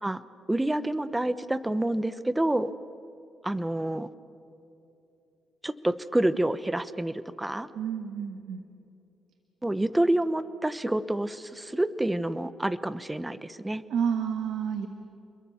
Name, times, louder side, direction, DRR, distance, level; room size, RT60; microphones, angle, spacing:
voice 1, 0.5-2.7 3.4-4.1 5.6-7.7 9.6-13.8, right 1 dB, 10° right, 14 dB, 1.1 m, -28 dB
voice 2, 7.7-8.6 13.9-14.9, right 7 dB, 70° right, 7 dB, 1.6 m, -30 dB
30.0 x 22.0 x 7.2 m, 2.8 s
cardioid pair, 90°, 0 cm